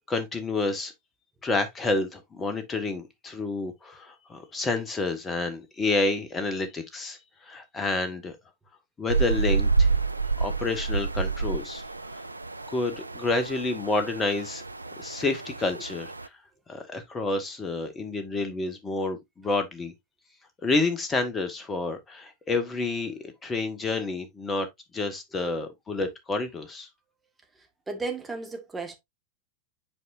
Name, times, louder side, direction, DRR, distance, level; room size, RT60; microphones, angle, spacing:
voice 1, 0.1-0.9 1.4-8.4 9.0-9.9 10.4-11.8 12.7-14.6 15.0-16.1 16.7-19.9 20.6-24.7 24.9-26.9, left 3 dB, 20° left, 1.4 m, -29 dB
sound 1, 9.1-16.3, right 4 dB, 85° right, 0.3 m, -28 dB
voice 2, 27.6-29.0, right 3 dB, 10° right, 1.7 m, -35 dB
7.7 x 4.8 x 2.6 m
figure-of-eight pair, 90°, 0 cm